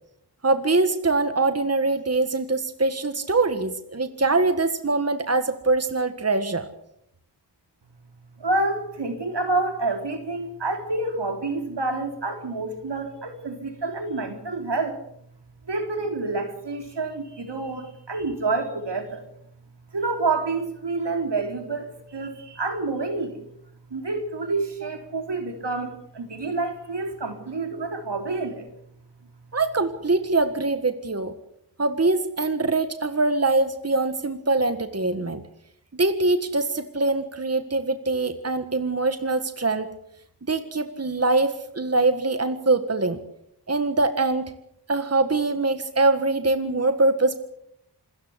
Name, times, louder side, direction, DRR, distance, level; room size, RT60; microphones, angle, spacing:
voice 1, 0.4-6.7 29.5-31.3 31.8-35.4 35.9-39.9 40.4-43.2 43.7-44.5 44.9-47.4, right 3 dB, 35° right, 9 dB, 1.7 m, -23 dB
voice 2, 8.4-15.0 15.7-19.3 19.9-23.4 23.9-28.6, right 3 dB, 80° right, 5 dB, 3.9 m, -28 dB
27.0 x 14.5 x 8.2 m, 0.75 s
wide cardioid pair, 55°, 41 cm